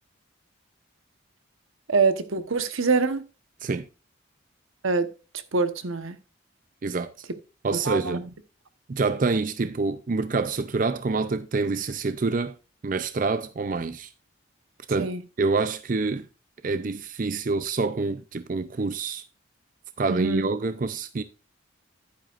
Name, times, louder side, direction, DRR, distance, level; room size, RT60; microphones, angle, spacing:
voice 1, 1.9-3.2 4.8-5.1 5.5-6.2 7.8-8.2 15.0-15.2 20.1-20.5, right 4 dB, 85° right, 1.1 m, -24 dB
voice 2, 6.8-7.3 7.6-8.3 8.9-12.6 12.8-14.1 14.9-16.3 16.6-19.2 20.0-21.2, right 3 dB, 40° right, 0.5 m, -27 dB
10.5 x 9.0 x 2.5 m
head